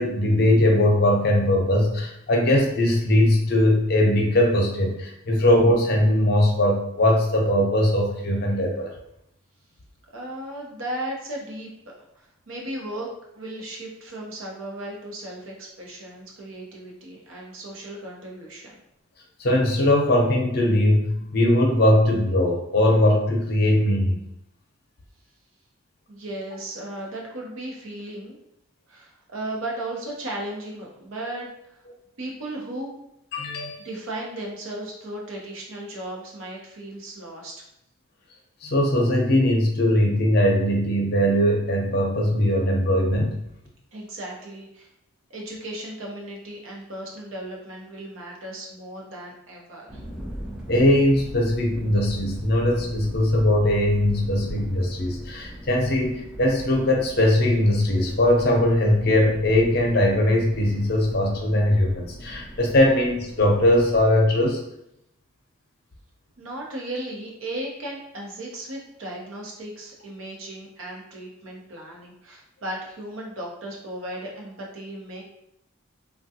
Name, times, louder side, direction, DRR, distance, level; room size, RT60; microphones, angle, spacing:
voice 1, 0.0-8.9 19.4-24.2 33.3-33.8 38.6-43.4 50.7-64.6, left 1 dB, 50° left, 0 dB, 0.6 m, -20 dB
voice 2, 10.1-11.7 12.1-13.1 13.3-18.7 26.1-28.4 28.9-31.8 32.2-33.0 33.8-37.6 43.9-44.9 45.3-50.0 66.4-75.3, right 1 dB, 80° right, -2 dB, 0.8 m, -36 dB
sound 1, 49.9-64.1, equal, 5° right, 0.4 m, -39 dB
3.4 x 2.3 x 2.7 m, 0.78 s
head